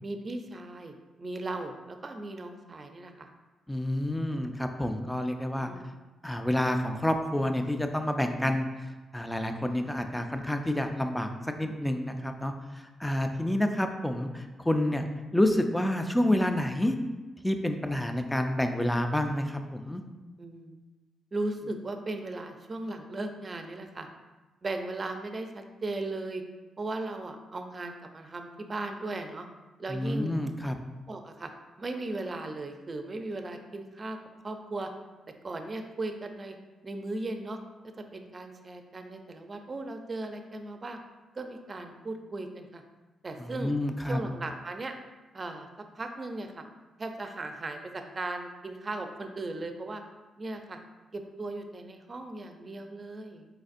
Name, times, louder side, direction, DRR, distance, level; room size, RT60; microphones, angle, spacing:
voice 1, 0.0-3.3 5.5-5.9 20.4-20.8 21.3-24.1 24.6-26.4 26.8-29.5 29.8-30.3 31.1-31.5 31.8-34.2 34.4-34.9 35.4-36.6 36.8-41.0 41.3-42.8 43.2-43.7 44.1-45.0 45.3-45.7 45.9-46.6 47.0-50.0 50.4-50.8 51.1-53.5, right 2 dB, 40° right, 5 dB, 0.5 m, -37 dB
voice 2, 3.7-5.7 6.2-11.3 11.6-15.1 15.3-17.0 17.4-20.0 29.9-30.8 43.4-44.2, left 1 dB, 10° left, 6 dB, 0.5 m, -29 dB
4.3 x 3.9 x 2.5 m, 1.2 s
supercardioid pair, 60°, 0 cm